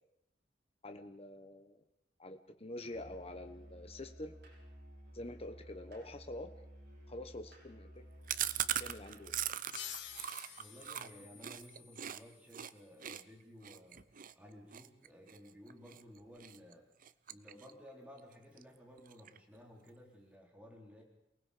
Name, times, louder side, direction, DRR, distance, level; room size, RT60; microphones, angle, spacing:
voice 1, 0.8-1.8 2.2-4.3 5.1-6.5 7.1-8.0 8.8-9.5, left 1 dB, 35° left, 7 dB, 1.2 m, -46 dB
Musical instrument, 2.8-9.5, equal, 65° right, 6.8 m, -55 dB
Chewing mastication, 8.3-12.2 12.5-12.7 13.0-16.0 16.4-16.7 17.0-17.9 18.2-18.3 18.6-18.7 19.0-19.6, right 11 dB, 50° right, 0.7 m, -40 dB
sound 1, 9.7-13.0, left 9 dB, 85° left, 2.1 m, -50 dB
voice 2, 10.6-14.1 14.4-16.9 17.3-21.0, equal, 10° right, -1 dB, 3.7 m, -56 dB
28.5 x 19.5 x 5.1 m, 0.83 s
head